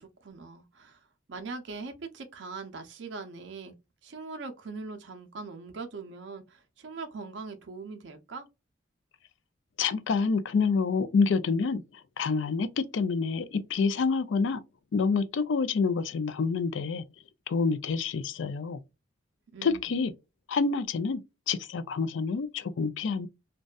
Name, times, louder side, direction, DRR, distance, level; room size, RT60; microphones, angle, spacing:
voice 1, 0.0-3.7 4.0-8.5 19.5-20.0, right 4 dB, 70° right, 0.5 m, -41 dB
voice 2, 9.8-11.8 12.2-14.6 14.9-17.0 17.5-18.8 19.6-20.1 20.5-21.2 21.5-23.3, left 4 dB, 75° left, 0.4 m, -27 dB
2.6 x 2.2 x 2.2 m
head